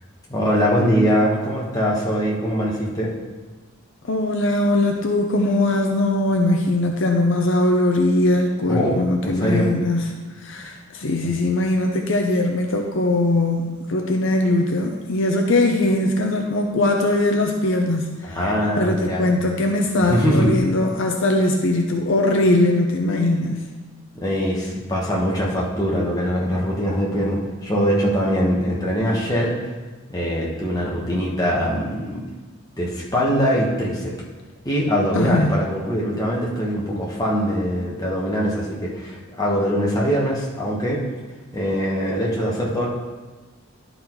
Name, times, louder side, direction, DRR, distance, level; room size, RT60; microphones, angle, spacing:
voice 1, 0.3-3.1 8.7-9.7 11.2-11.3 18.2-19.3 20.1-20.5 24.1-29.6 30.1-32.2 32.8-34.1 34.6-41.0 41.5-42.9, equal, 15° left, -4 dB, 1.3 m, -22 dB
voice 2, 4.1-10.0 10.4-18.2 18.8-23.6 35.1-35.6, left 2 dB, 60° left, 2 dB, 0.6 m, -20 dB
11.5 x 4.0 x 4.6 m, 1.3 s
head